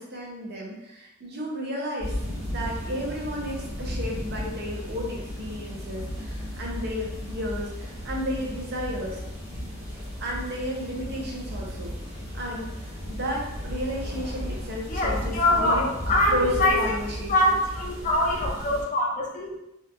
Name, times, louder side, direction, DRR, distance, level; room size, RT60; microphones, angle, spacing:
voice 1, 0.0-2.1 2.5-9.2 10.2-12.0 12.3-17.3, equal, 55° right, -1 dB, 0.5 m, -33 dB
sound 1, 2.0-18.8, equal, 30° right, 1.0 m, -35 dB
voice 2, 14.9-17.0 17.3-19.6, left 1 dB, 40° left, -3 dB, 0.5 m, -24 dB
2.7 x 2.3 x 2.5 m, 0.92 s
head